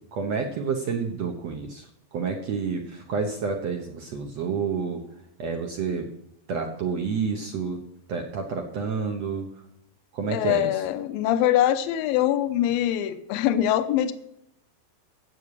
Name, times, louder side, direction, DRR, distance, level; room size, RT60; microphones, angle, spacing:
voice 1, 0.1-5.0 5.4-6.1 6.5-7.8 8.1-9.5 10.1-10.9, right 5 dB, 80° right, 3 dB, 1.5 m, -29 dB
voice 2, 10.3-14.1, left 12 dB, 75° left, 10 dB, 2.4 m, -23 dB
14.5 x 8.5 x 4.8 m, 0.78 s
omnidirectional pair, 4.7 m